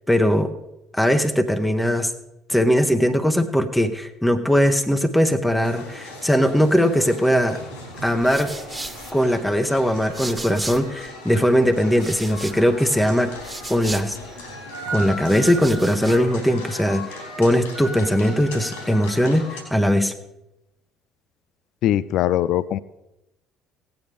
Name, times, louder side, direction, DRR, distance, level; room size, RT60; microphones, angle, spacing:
voice 1, 0.1-0.5 0.9-2.1 2.5-7.6 8.0-8.5 9.1-13.3 13.7-14.2 14.9-20.1, equal, 5° left, 6 dB, 0.9 m, -20 dB
sound 1, 5.6-19.6, equal, 80° left, 3.8 m, -37 dB
sound 2, 7.9-11.1 11.4-14.5 15.1-16.3, right 2 dB, 15° right, 1.5 m, -38 dB
voice 2, 21.8-22.8, left 12 dB, 60° left, 17 dB, 0.3 m, -21 dB
17.0 x 9.1 x 3.4 m, 0.92 s
figure-of-eight pair, 55°, 0 cm